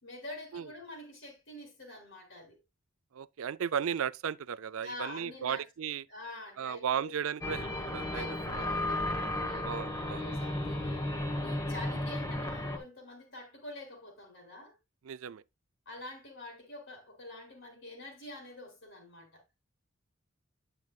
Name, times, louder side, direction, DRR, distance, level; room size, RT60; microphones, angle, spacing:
voice 1, 0.0-2.6 4.8-5.6 6.1-7.1 8.1-11.1 11.4-14.7 15.9-19.4, left 2 dB, 60° left, 3.7 m, -46 dB
voice 2, 3.1-6.0 6.6-8.4 9.6-10.2 15.0-15.4, right 8 dB, 80° right, 0.4 m, -35 dB
sound 1, 7.4-12.8, left 1 dB, 15° left, 1.2 m, -34 dB
9.4 x 7.8 x 2.3 m
head